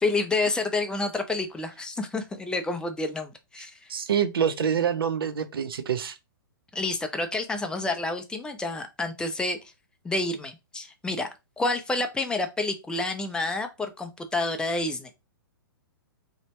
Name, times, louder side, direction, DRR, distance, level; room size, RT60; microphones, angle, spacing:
voice 1, 0.0-3.9 6.7-9.6 10.0-11.3 11.6-15.1, left 2 dB, 5° left, 0.3 m, -29 dB
voice 2, 3.9-6.1, right 8 dB, 75° right, 0.5 m, -26 dB
2.6 x 2.1 x 3.0 m
hypercardioid pair, 120°, 12 cm